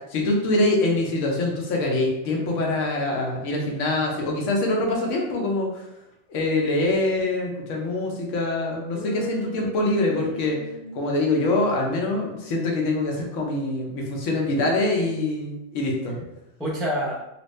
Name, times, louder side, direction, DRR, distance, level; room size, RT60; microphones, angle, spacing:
voice 1, 0.1-5.8 6.3-10.6 10.9-16.2, left 2 dB, 75° left, 0 dB, 1.1 m, -24 dB
voice 2, 8.9-10.9 16.6-17.1, equal, ahead, -4 dB, 0.4 m, -31 dB
2.9 x 2.5 x 3.1 m, 0.88 s
omnidirectional pair, 1.3 m